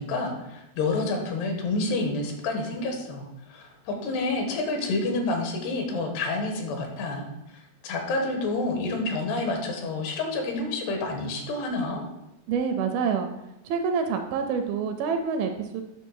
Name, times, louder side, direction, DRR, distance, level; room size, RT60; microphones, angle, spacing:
voice 1, 0.0-3.2 3.5-7.3 7.8-12.0, left 2 dB, 85° left, 3 dB, 3.3 m, -28 dB
voice 2, 12.5-13.3 13.7-15.8, right 6 dB, 80° right, 6 dB, 2.3 m, -27 dB
9.3 x 3.2 x 6.3 m, 0.89 s
omnidirectional pair, 4.6 m